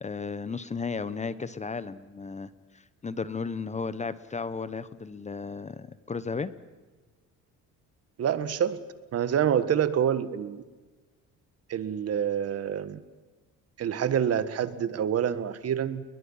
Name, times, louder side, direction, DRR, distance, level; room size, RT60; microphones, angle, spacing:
voice 1, 0.0-6.5, left 4 dB, 20° left, 15 dB, 1.0 m, -34 dB
voice 2, 8.2-8.8 9.1-10.6 11.7-13.0 13.8-16.0, right 9 dB, 50° right, 13 dB, 1.6 m, -27 dB
29.5 x 22.0 x 5.7 m, 1.3 s
cardioid pair, 120°, 32 cm